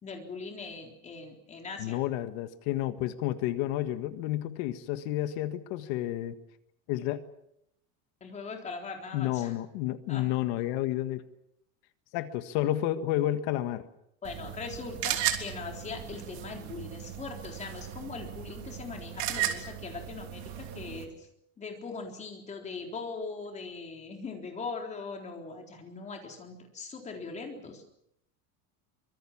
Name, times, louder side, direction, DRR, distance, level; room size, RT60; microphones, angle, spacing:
voice 1, 0.0-2.0 8.2-9.5 10.1-10.3 14.2-21.3 21.6-27.8, left 4 dB, 20° left, 3 dB, 3.8 m, -40 dB
voice 2, 1.8-6.4 6.9-7.2 9.1-11.2 12.1-13.8, left 13 dB, 60° left, 10 dB, 1.7 m, -30 dB
sound 1, 14.2-21.0, right 11 dB, 45° right, 3.3 m, -36 dB
25.0 x 23.5 x 7.3 m, 0.77 s
cardioid pair, 175°, 39 cm